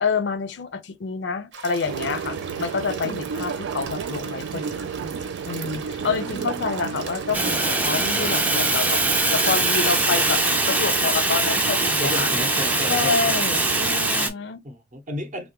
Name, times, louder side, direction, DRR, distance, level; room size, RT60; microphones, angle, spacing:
voice 1, 0.0-5.1 5.5-9.0 9.3-12.3 12.9-14.6, left 5 dB, 65° left, 0.4 m, -28 dB
sound 1, 1.5-9.7, right 6 dB, 70° right, 0.8 m, -40 dB
sound 2, 1.8-14.1, right 6 dB, 90° right, 0.3 m, -32 dB
voice 2, 5.7-6.7 12.0-13.4 14.2-14.3 14.6-15.5, left 1 dB, 40° right, 0.7 m, -34 dB
Fire, 7.3-14.3, right 2 dB, 10° right, 0.3 m, -22 dB
3.3 x 2.1 x 2.9 m
head